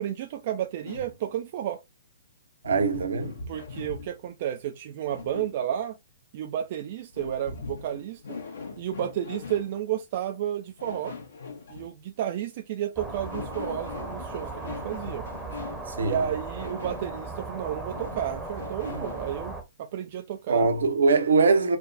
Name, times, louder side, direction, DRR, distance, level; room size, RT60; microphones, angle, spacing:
voice 1, 0.0-1.8 3.5-6.0 6.3-8.4 8.8-11.1 11.7-15.2 16.0-20.7, right 10 dB, 45° right, 0.3 m, -32 dB
sound 1, 0.8-1.2 2.6-4.3 5.0-5.8 7.1-9.8 10.8-11.9 13.0-15.9 16.6-17.1 17.9-19.3, left 4 dB, 65° left, 1.0 m, -40 dB
voice 2, 2.6-3.4 16.0-16.2 20.5-21.8, right 4 dB, 70° right, 0.7 m, -22 dB
sound 2, 13.0-19.6, right 3 dB, 5° right, 0.8 m, -37 dB
3.3 x 2.1 x 2.5 m
figure-of-eight pair, 120°, 0 cm